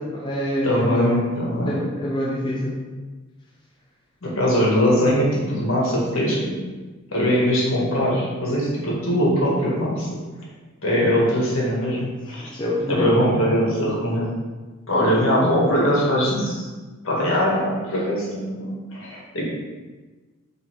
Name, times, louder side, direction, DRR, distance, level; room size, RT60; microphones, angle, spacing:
voice 1, 0.0-1.1 1.6-2.8 12.5-13.2, equal, 20° left, -5 dB, 0.8 m, -26 dB
voice 2, 0.6-1.7 4.2-6.6 7.1-10.3 10.8-12.4 12.9-14.3 14.9-16.7 17.0-19.4, equal, 75° left, -4 dB, 1.8 m, -21 dB
5.6 x 3.6 x 4.7 m, 1.3 s
head